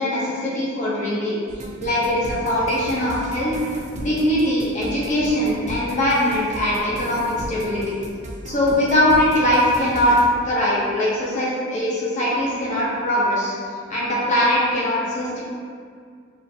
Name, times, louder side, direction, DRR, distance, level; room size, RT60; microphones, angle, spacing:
voice 1, 0.0-1.4 1.8-3.5 4.0-7.9 8.4-10.1 10.4-13.5 13.9-15.4, left 1 dB, 35° left, -7 dB, 0.7 m, -21 dB
sound 1, 1.5-10.3, right 1 dB, 35° right, 0.3 m, -36 dB
4.4 x 2.5 x 2.6 m, 2.1 s
head